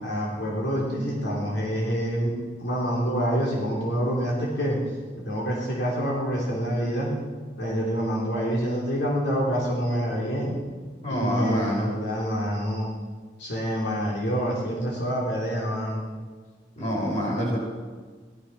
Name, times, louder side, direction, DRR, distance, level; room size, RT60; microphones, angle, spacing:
voice 1, 0.0-2.3 2.6-4.8 5.1-7.1 7.6-10.6 11.1-12.9 13.4-16.0, equal, 90° left, -3 dB, 3.4 m, -27 dB
voice 2, 11.0-11.9 16.8-17.6, equal, 40° left, -4 dB, 6.3 m, -26 dB
16.5 x 13.0 x 5.8 m, 1.4 s
head